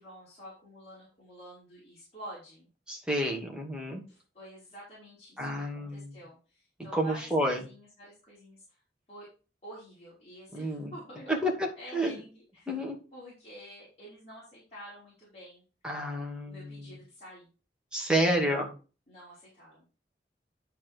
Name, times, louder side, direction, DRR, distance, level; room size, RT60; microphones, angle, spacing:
voice 1, 0.0-2.7 4.1-8.8 9.1-9.3 9.6-11.4 11.8-12.7 13.1-15.6 16.4-17.5 19.1-19.8, equal, 35° left, -8 dB, 4.9 m, -49 dB
voice 2, 2.9-4.0 5.4-6.2 6.9-7.6 10.5-10.9 11.3-11.5 11.9-12.2 12.7-13.0 15.8-17.0 17.9-18.7, right 1 dB, 5° right, 0 dB, 2.2 m, -30 dB
11.5 x 4.6 x 4.7 m, 0.34 s
head